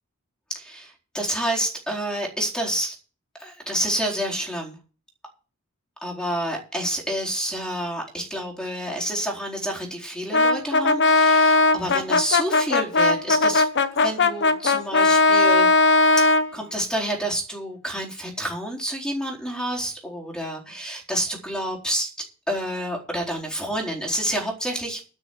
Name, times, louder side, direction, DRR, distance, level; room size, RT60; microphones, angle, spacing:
voice 1, 0.5-2.9 3.4-4.8 6.0-13.7 14.0-16.1 16.5-22.1 22.5-25.0, right 1 dB, 5° left, -1 dB, 4.3 m, -29 dB
Brass instrument, 10.3-16.5, left 3 dB, 55° left, 1.1 m, -18 dB
12.5 x 6.7 x 8.2 m, 0.36 s
head